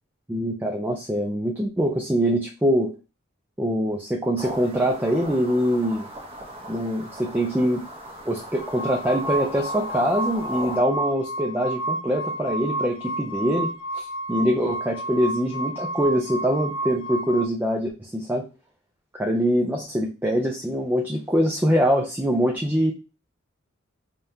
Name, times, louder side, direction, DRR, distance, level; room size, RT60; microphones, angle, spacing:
voice 1, 0.3-2.9 3.6-6.1 6.7-7.8 8.3-18.5 19.2-22.9, equal, 10° right, 1 dB, 0.4 m, -24 dB
sound 1, 4.4-10.8, right 1 dB, 25° right, 0.8 m, -38 dB
sound 2, 8.6-17.5, right 1 dB, 75° left, 0.3 m, -31 dB
5.2 x 2.3 x 2.7 m, 0.32 s
head